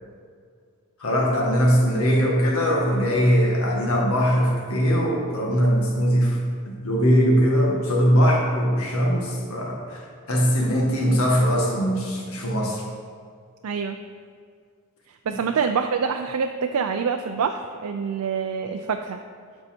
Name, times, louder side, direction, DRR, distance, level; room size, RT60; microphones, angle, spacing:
voice 1, 1.0-6.4 6.7-10.0 10.3-12.8 15.3-15.4, equal, 75° left, -1 dB, 1.8 m, -21 dB
voice 2, 13.6-14.0 15.1-19.2, right 6 dB, 85° right, 6 dB, 0.4 m, -26 dB
12.0 x 5.4 x 4.4 m, 2.1 s
head